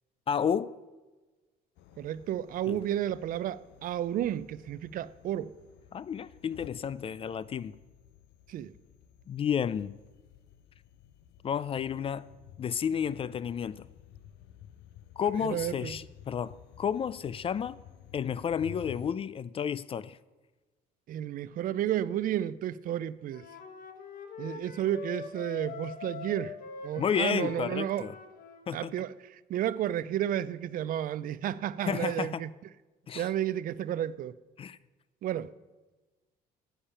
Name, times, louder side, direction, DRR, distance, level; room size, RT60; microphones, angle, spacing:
voice 1, 0.3-0.7 2.7-2.8 5.9-7.7 9.3-10.0 11.4-12.3 12.6-13.9 15.2-17.8 18.1-20.2 27.0-28.2 28.7-28.9 31.8-32.4 33.1-33.3 34.6-34.8, left 8 dB, 35° left, 0.3 m, -31 dB
sound 1, 1.8-19.1, left 11 dB, 90° left, 0.6 m, -53 dB
voice 2, 2.0-5.5 8.5-8.7 15.3-16.0 21.1-23.4 24.4-26.5 26.8-28.1 28.7-32.5 33.1-34.3 35.2-35.5, right 11 dB, 55° right, 0.4 m, -32 dB
Wind instrument woodwind instrument, 23.3-28.7, left 6 dB, 55° left, 1.2 m, -43 dB
10.0 x 8.8 x 5.6 m
cardioid pair, 110°, 17 cm